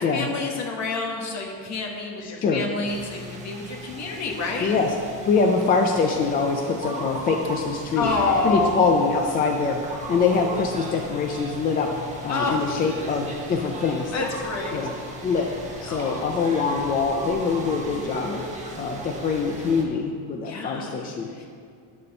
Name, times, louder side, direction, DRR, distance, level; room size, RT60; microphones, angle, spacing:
voice 1, 0.0-4.7 8.0-8.8 12.3-12.6 14.1-14.8 15.8-16.4 20.4-20.9 21.4-21.5, left 3 dB, 40° left, 1 dB, 1.5 m, -28 dB
voice 2, 2.2-2.7 4.6-4.9 5.3-8.1 8.4-11.9 12.2-14.3 14.7-14.9 15.2-15.5 15.8-18.4 18.8-21.3, left 4 dB, 20° left, 2 dB, 0.4 m, -24 dB
sound 1, 2.8-19.8, right 1 dB, 15° right, 1.2 m, -37 dB
11.5 x 4.4 x 6.8 m, 2.2 s
cardioid pair, 155°, 44 cm